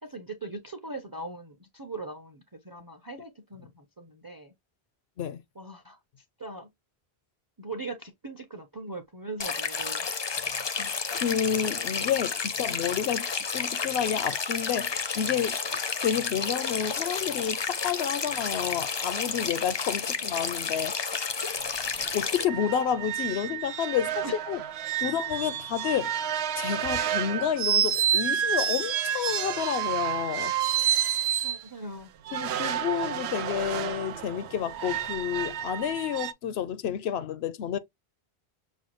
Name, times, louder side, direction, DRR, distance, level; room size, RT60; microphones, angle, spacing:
voice 1, 0.0-4.5 5.6-6.0 6.4-6.7 7.6-10.1 24.2-24.4 31.4-32.7, right 2 dB, 25° right, 0.5 m, -40 dB
sound 1, 9.4-22.4, left 5 dB, 40° left, 0.4 m, -31 dB
voice 2, 10.4-15.6 16.0-20.9 22.1-24.6 25.0-26.2 26.6-30.5 32.3-37.8, left 9 dB, 80° left, 0.8 m, -30 dB
sound 2, 21.6-21.7 22.0-22.2 22.4-31.6 32.3-36.3, right 9 dB, 85° right, 0.8 m, -29 dB
6.2 x 2.3 x 2.9 m
omnidirectional pair, 1.1 m